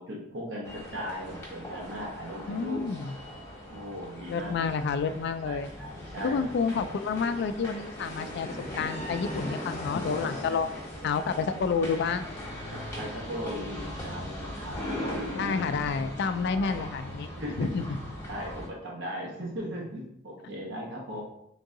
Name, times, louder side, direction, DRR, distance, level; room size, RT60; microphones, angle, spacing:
voice 1, 0.0-2.8 3.7-4.7 5.4-6.5 10.5-10.8 12.7-15.6 16.5-16.7 17.4-17.7 18.3-21.2, equal, 70° right, -3 dB, 1.1 m, -38 dB
sound 1, 0.6-18.7, equal, 15° left, 1.5 m, -40 dB
voice 2, 2.5-3.1 4.3-5.7 6.2-10.7 11.0-12.3 15.4-17.3 17.6-18.0, left 5 dB, 60° left, 11 dB, 0.3 m, -29 dB
sound 2, 5.9-14.8, left 1 dB, 35° left, 0.9 m, -42 dB
3.8 x 2.7 x 3.7 m, 0.77 s
head